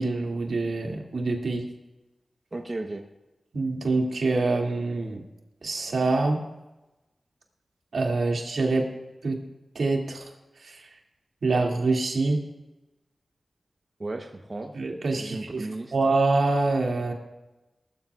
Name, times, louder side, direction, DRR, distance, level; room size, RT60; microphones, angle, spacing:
voice 1, 0.0-1.7 3.5-5.2 5.6-6.4 7.9-8.9 9.2-9.4 9.7-10.2 10.6-10.9 11.4-12.4 14.7-15.7 15.9-17.1, right 3 dB, 80° right, 1 dB, 2.3 m, -25 dB
voice 2, 2.5-3.0 14.0-14.8 15.2-15.9, right 2 dB, 35° right, 3 dB, 1.0 m, -34 dB
20.0 x 13.0 x 2.4 m, 1.0 s
wide cardioid pair, 85°, 0 cm